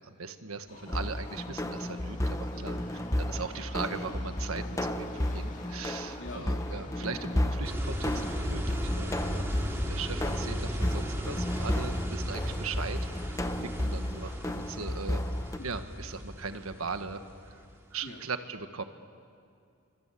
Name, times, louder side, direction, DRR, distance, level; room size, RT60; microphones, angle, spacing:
voice 1, 0.0-2.8 3.2-9.3 9.9-15.2 15.6-17.6 17.9-18.8, right 4 dB, 80° right, 9 dB, 1.5 m, -39 dB
Subway metro underground, 0.7-14.8 15.1-15.2 16.0-16.1 16.4-16.5 17.1-17.2, left 1 dB, 35° left, 2.2 m, -50 dB
sound 1, 0.9-15.6, left 1 dB, 15° left, 0.8 m, -33 dB
voice 2, 6.1-6.5 9.2-9.6 13.5-13.6 15.6-15.7 18.0-18.2, left 2 dB, 60° left, 2 dB, 3.2 m, -45 dB
sound 2, 7.6-17.8, equal, 10° right, 2.9 m, -36 dB
28.0 x 25.0 x 8.5 m, 2.4 s
head